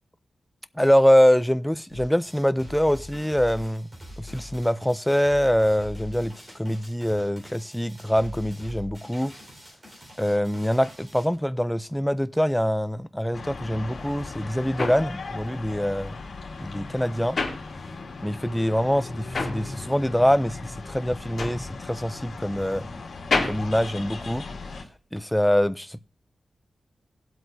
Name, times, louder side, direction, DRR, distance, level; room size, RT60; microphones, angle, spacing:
voice 1, 0.8-3.9 4.2-9.3 10.2-16.2 16.6-17.4 18.2-22.9 23.4-24.4 25.1-26.0, equal, 5° left, 0.4 m, -24 dB
sound 1, 1.9-11.3, left 1 dB, 35° right, 4.4 m, -43 dB
sound 2, 13.3-24.8, left 3 dB, 75° left, 2.2 m, -38 dB
sound 3, 14.0-18.3 18.6-24.8, left 3 dB, 50° left, 2.4 m, -32 dB
19.0 x 7.8 x 2.6 m
wide cardioid pair, 150°, 0 cm